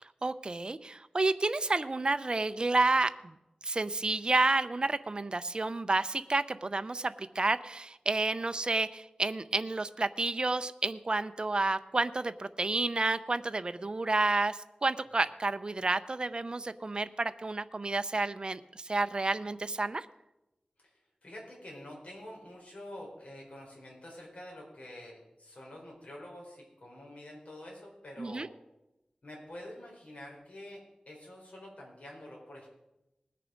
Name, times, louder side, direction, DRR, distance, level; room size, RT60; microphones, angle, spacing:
voice 1, 0.2-3.4 3.6-20.1 28.2-28.5, right 3 dB, 35° right, 11 dB, 0.5 m, -30 dB
voice 2, 21.2-28.5 29.2-30.8 31.1-32.7, left 1 dB, 60° left, -3 dB, 4.2 m, -47 dB
19.5 x 6.7 x 5.1 m, 0.92 s
wide cardioid pair, 85°, 3 cm